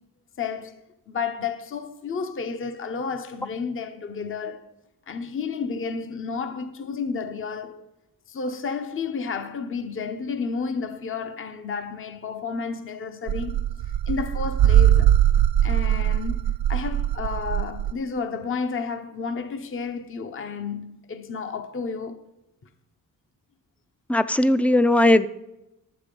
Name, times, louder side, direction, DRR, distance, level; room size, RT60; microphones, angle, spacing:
voice 1, 0.4-0.8 1.1-4.6 5.1-7.9 8.3-13.6 14.1-15.2 15.6-22.2, left 5 dB, 40° left, 0.7 m, -31 dB
sound 1, 13.3-17.9, right 11 dB, 90° right, 0.5 m, -21 dB
voice 2, 24.1-25.3, left 1 dB, 5° left, 0.3 m, -18 dB
11.0 x 7.5 x 5.2 m
wide cardioid pair, 130°, 34 cm